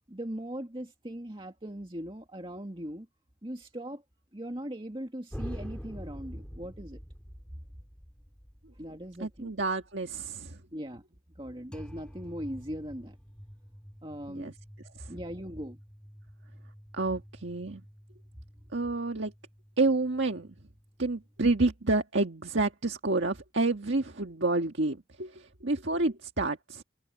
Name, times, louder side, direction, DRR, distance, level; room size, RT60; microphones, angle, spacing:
voice 1, 0.1-3.1 3.4-4.0 4.3-7.0 8.8-9.5 10.7-11.0 11.4-13.2 14.0-14.5 15.1-15.8, equal, 25° right, 2.1 m, -39 dB
sound 1, 5.3-10.4 11.7-21.7, equal, 5° left, 4.8 m, -47 dB
voice 2, 9.2-10.6 14.3-14.5 14.9-15.1 16.9-17.8 18.7-19.3 19.8-20.5 21.0-26.8, right 2 dB, 75° right, 1.6 m, -29 dB
head